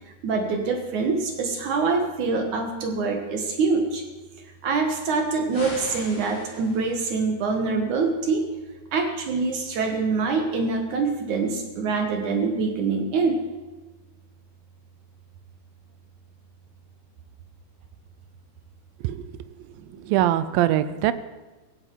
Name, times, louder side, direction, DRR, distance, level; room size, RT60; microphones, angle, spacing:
voice 1, 0.2-4.0 4.6-8.5 8.9-13.4, right 4 dB, 60° right, 4 dB, 2.3 m, -25 dB
sound 1, 5.5-7.1, left 2 dB, 35° left, 3.4 m, -39 dB
voice 2, 20.1-21.1, right 13 dB, 80° right, 13 dB, 2.1 m, -21 dB
17.0 x 16.5 x 4.6 m, 1.2 s
omnidirectional pair, 4.7 m